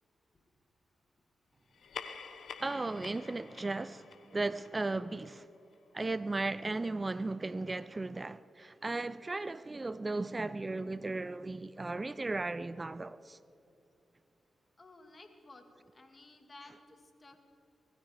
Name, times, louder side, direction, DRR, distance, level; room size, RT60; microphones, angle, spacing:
sound 1, 1.7-6.6, left 6 dB, 75° left, 1.0 m, -49 dB
voice 1, 2.6-4.1 4.3-5.5 5.9-13.4, right 2 dB, 30° right, 0.4 m, -36 dB
voice 2, 14.8-15.6 15.9-17.4, left 2 dB, 35° left, 2.1 m, -55 dB
20.5 x 14.0 x 5.0 m
cardioid pair, 55°, 0 cm